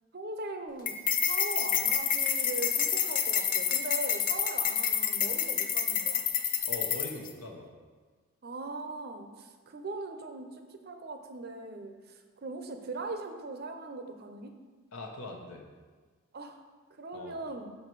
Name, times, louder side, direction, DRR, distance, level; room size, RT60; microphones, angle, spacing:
voice 1, 0.1-6.2 8.4-14.5 16.3-16.6 17.0-17.7, right 2 dB, 45° right, 6 dB, 0.6 m, -40 dB
sound 1, 0.9-7.3, left 8 dB, 40° left, 0.5 m, -28 dB
voice 2, 6.6-7.7 14.9-15.6 17.1-17.3, left 2 dB, 70° left, 1 dB, 1.1 m, -41 dB
6.7 x 5.5 x 4.6 m, 1.4 s
head